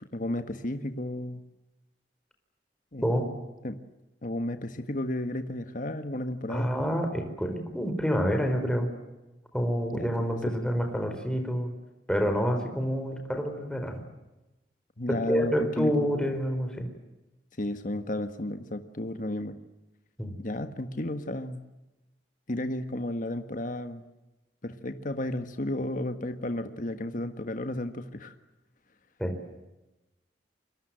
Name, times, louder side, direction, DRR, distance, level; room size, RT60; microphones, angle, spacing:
voice 1, 0.0-1.4 2.9-3.1 3.6-3.8 4.2-6.8 9.9-10.5 15.0-16.1 17.6-19.6 20.4-21.6 22.5-24.0 24.6-28.3, left 1 dB, 50° left, 8 dB, 1.6 m, -33 dB
voice 2, 6.5-8.9 9.5-11.7 12.1-14.0 15.1-16.9 20.2-20.3 29.2-29.3, equal, 5° left, 5 dB, 4.6 m, -28 dB
29.0 x 24.0 x 7.8 m, 1.0 s
head